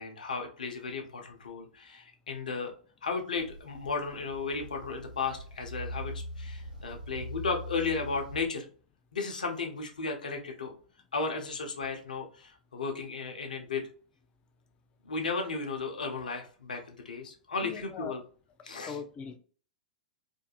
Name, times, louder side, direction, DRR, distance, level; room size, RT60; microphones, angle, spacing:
voice 1, 0.0-2.7 3.0-8.6 9.1-10.7 11.1-13.8 15.0-18.2 18.6-19.0, left 4 dB, 75° left, 0.6 m, -34 dB
sound 1, 3.3-8.5, equal, 85° right, 1.0 m, -42 dB
voice 2, 17.6-18.2 18.7-19.4, left 6 dB, 25° left, 0.4 m, -41 dB
2.5 x 2.2 x 2.8 m
figure-of-eight pair, 100°, 4 cm